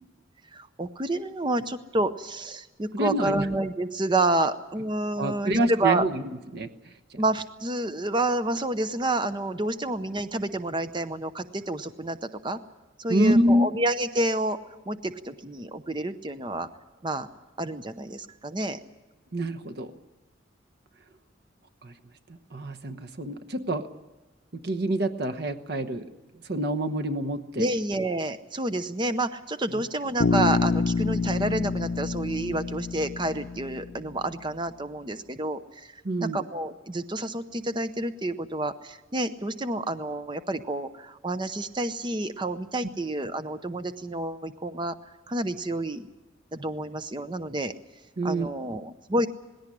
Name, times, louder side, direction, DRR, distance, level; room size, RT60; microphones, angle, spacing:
voice 1, 0.5-6.0 7.2-12.6 13.0-14.6 14.9-16.7 17.0-17.3 17.6-18.8 27.6-35.9 36.2-45.0 45.3-46.1 46.5-47.7 48.2-49.3, right 1 dB, 25° right, 10 dB, 0.7 m, -29 dB
voice 2, 2.9-3.5 5.2-6.2 6.5-6.9 13.1-13.7 19.3-19.9 21.8-21.9 22.3-23.9 24.6-26.1 26.5-27.7 29.7-29.8 36.0-36.4 48.2-48.5, right 1 dB, 55° right, 7 dB, 1.1 m, -26 dB
Bass guitar, 30.2-34.3, left 4 dB, 80° left, 0.7 m, -27 dB
19.0 x 17.0 x 9.9 m, 1.2 s
head